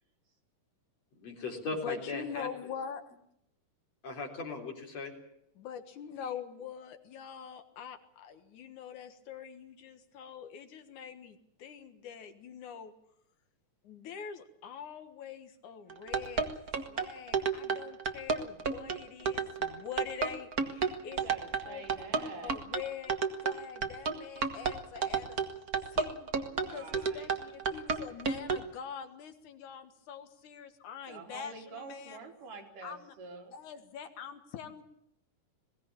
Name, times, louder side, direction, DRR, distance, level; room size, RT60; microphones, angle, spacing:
voice 1, 1.2-2.7 4.0-5.1, left 3 dB, 55° left, 2 dB, 5.0 m, -38 dB
voice 2, 1.7-3.0 5.6-12.9 13.8-16.5 16.9-21.2 21.6-22.1 22.4-23.2 23.4-25.4 25.9-26.3 26.7-32.2 32.8-33.1 33.5-34.8, left 7 dB, 75° left, 9 dB, 2.9 m, -44 dB
sound 1, 15.9-28.6, right 5 dB, 40° right, 1.5 m, -31 dB
voice 3, 21.2-22.5 26.5-27.4 31.1-33.5, right 4 dB, 85° right, 3 dB, 4.7 m, -47 dB
21.5 x 17.0 x 8.7 m, 0.74 s
omnidirectional pair, 3.6 m